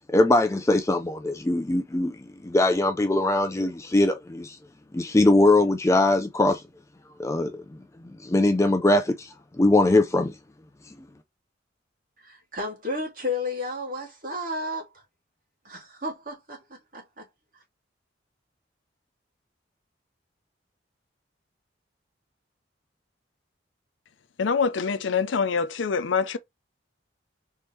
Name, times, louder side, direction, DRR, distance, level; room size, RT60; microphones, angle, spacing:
voice 1, 0.1-2.2 2.4-4.6 4.9-6.6 7.2-7.6 8.2-10.3, left 2 dB, 15° left, 0.3 m, -21 dB
voice 2, 12.2-15.0 15.6-17.3 17.5-17.6, left 2 dB, 45° right, 2.3 m, -33 dB
voice 3, 24.4-26.4, left 5 dB, 75° left, 0.5 m, -25 dB
4.1 x 3.6 x 3.1 m
head